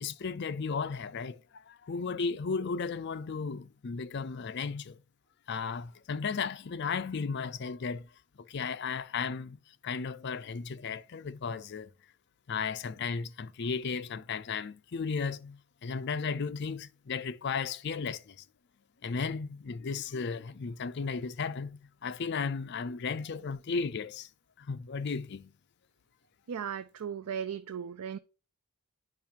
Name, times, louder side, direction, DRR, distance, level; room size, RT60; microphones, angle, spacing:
voice 1, 0.0-1.4 1.7-5.0 5.5-8.1 8.5-11.9 12.5-18.4 19.0-24.3 24.6-25.5, left 5 dB, 50° left, 0.5 m, -35 dB
voice 2, 26.5-28.2, right 7 dB, 85° right, 0.4 m, -36 dB
8.8 x 5.6 x 2.9 m
head